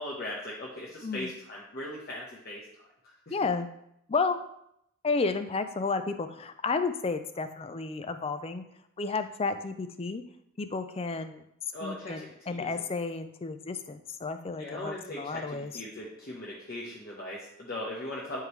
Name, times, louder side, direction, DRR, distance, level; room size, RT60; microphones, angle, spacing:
voice 1, 0.0-2.6 3.0-3.3 11.7-12.9 14.6-18.4, left 1 dB, 45° left, -5 dB, 1.1 m, -39 dB
voice 2, 3.3-3.7 4.1-4.4 5.0-8.6 9.0-10.2 10.6-11.4 11.8-15.7, left 4 dB, 25° left, 10 dB, 0.4 m, -32 dB
11.0 x 3.8 x 3.2 m, 0.76 s
head